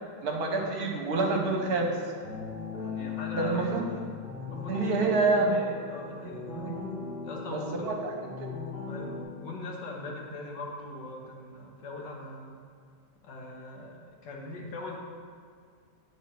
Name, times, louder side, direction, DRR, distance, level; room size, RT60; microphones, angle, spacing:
voice 1, 0.2-2.0 3.3-3.9 4.7-5.6 6.5-6.8 7.5-7.9 8.4-8.5, right 3 dB, 65° right, 2 dB, 1.3 m, -27 dB
sound 1, 1.5-9.2, left 5 dB, 40° left, 2.6 m, -39 dB
voice 2, 2.7-3.6 4.5-4.9 5.5-6.7 7.2-7.9 8.9-12.6 13.2-15.0, left 2 dB, 75° left, -1 dB, 1.9 m, -41 dB
8.8 x 4.2 x 5.8 m, 2.2 s
omnidirectional pair, 1.9 m